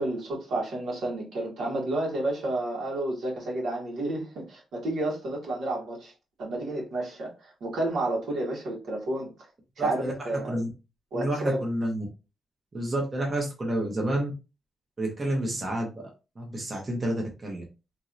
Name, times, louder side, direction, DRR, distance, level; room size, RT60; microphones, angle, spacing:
voice 1, 0.0-6.1 6.4-9.3 9.8-10.6 11.1-11.6, right 2 dB, 75° right, 1.4 m, -30 dB
voice 2, 9.8-10.7 11.1-12.1 12.7-14.3 15.0-16.1 16.4-17.6, right 1 dB, 25° right, 0.8 m, -29 dB
3.0 x 2.6 x 2.6 m
wide cardioid pair, 150°, 0 cm